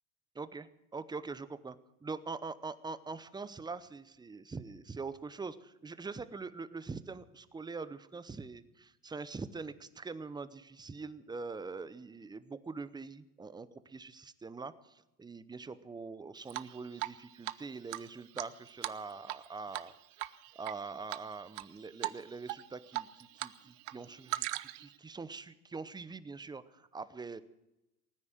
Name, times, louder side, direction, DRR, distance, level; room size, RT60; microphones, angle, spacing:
voice 1, 0.3-27.4, right 4 dB, 10° right, 15 dB, 0.7 m, -44 dB
Drip, 16.5-17.2 17.4-17.5 17.9-19.4 19.7-19.9 20.2-20.7 21.1-21.6 22.0-22.2 22.5-23.5 23.8-24.9, right 19 dB, 55° right, 0.8 m, -38 dB
19.5 x 9.7 x 7.8 m, 0.91 s
hypercardioid pair, 95°, 45 cm